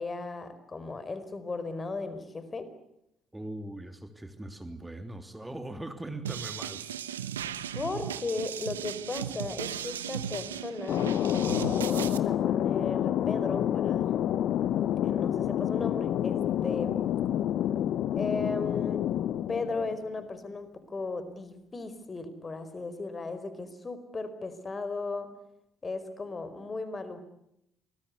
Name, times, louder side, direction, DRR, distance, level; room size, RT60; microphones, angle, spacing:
voice 1, 0.0-2.7 7.7-14.1 15.0-17.0 18.1-19.0 19.5-25.3 25.8-27.2, left 3 dB, 30° left, 12 dB, 4.6 m, -36 dB
voice 2, 3.3-7.3, right 1 dB, 10° right, 8 dB, 3.3 m, -41 dB
sound 1, 6.2-12.2, right 9 dB, 90° right, 1.0 m, -36 dB
Thunder, 10.9-20.2, left 11 dB, 60° left, 0.9 m, -28 dB
27.5 x 21.0 x 8.3 m, 0.80 s
hypercardioid pair, 50°, 0 cm